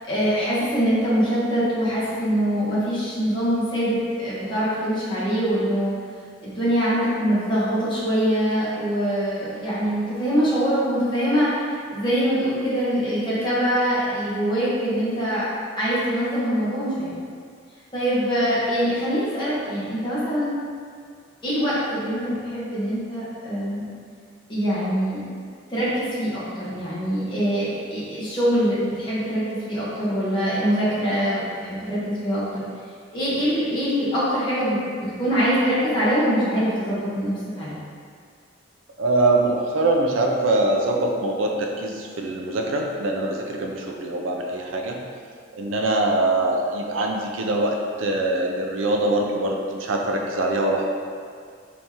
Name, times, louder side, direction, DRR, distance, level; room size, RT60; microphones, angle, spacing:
voice 1, 0.1-6.0 6.4-11.6 11.9-15.5 15.8-17.1 17.9-20.5 21.4-23.8 24.5-25.2 25.7-32.6 33.1-37.8, equal, 25° left, -10 dB, 1.2 m, -23 dB
voice 2, 39.0-45.0 45.5-50.9, right 2 dB, 80° right, 1 dB, 0.5 m, -23 dB
4.1 x 2.9 x 3.6 m, 2.1 s
head